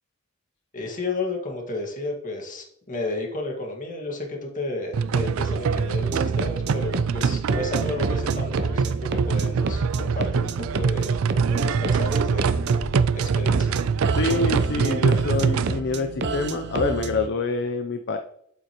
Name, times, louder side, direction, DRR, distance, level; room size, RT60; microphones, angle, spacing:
voice 1, 0.7-11.2 11.5-12.6 13.1-13.8, left 2 dB, 40° left, 1 dB, 1.8 m, -32 dB
sound 1, 4.9-15.8, right 5 dB, 85° right, 0.4 m, -24 dB
sound 2, 5.2-5.3 6.0-7.8 8.3-10.6 11.2-14.0, left 1 dB, 80° left, 1.3 m, -52 dB
sound 3, 6.0-17.3, right 3 dB, 55° right, 0.7 m, -30 dB
voice 2, 14.2-18.2, left 3 dB, 55° left, 6 dB, 0.5 m, -26 dB
8.0 x 8.0 x 3.0 m, 0.71 s
head